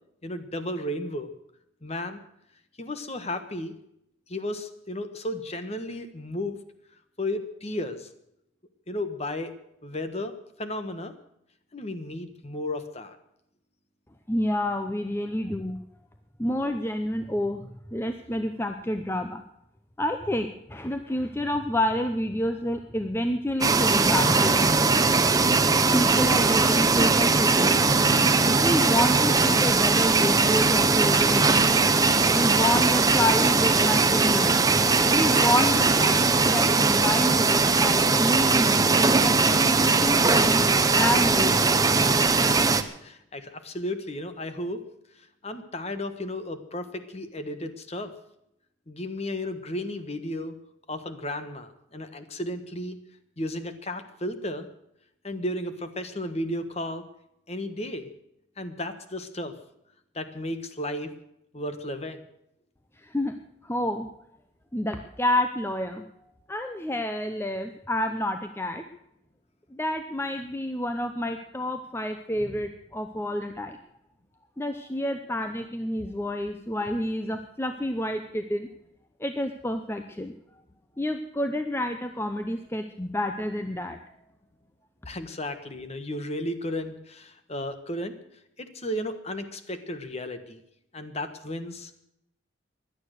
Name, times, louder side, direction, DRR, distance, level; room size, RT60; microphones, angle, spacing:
voice 1, 0.2-1.3 1.8-2.2 2.8-3.7 4.3-6.6 7.2-8.1 8.9-9.5 9.8-10.3 10.6-11.1 11.7-13.2 42.3-44.8 45.1-48.1 48.9-50.5 50.9-53.0 53.4-54.7 55.2-57.0 57.5-58.1 58.6-59.5 60.1-61.1 61.5-62.3 85.1-88.2 88.6-90.6 90.9-91.9, left 1 dB, 30° left, 9 dB, 1.3 m, -34 dB
voice 2, 14.3-15.8 16.4-19.4 20.0-24.7 25.9-27.8 28.6-31.7 32.3-34.5 35.1-40.7 41.0-41.7 63.0-63.3 63.6-64.1 64.7-66.0 66.5-68.8 69.7-73.8 74.6-78.7 79.2-80.3 81.0-84.0, left 1 dB, 10° left, 6 dB, 0.7 m, -29 dB
sound 1, 23.6-42.8, right 4 dB, 20° right, 0.8 m, -20 dB
16.5 x 11.5 x 6.5 m, 0.77 s
head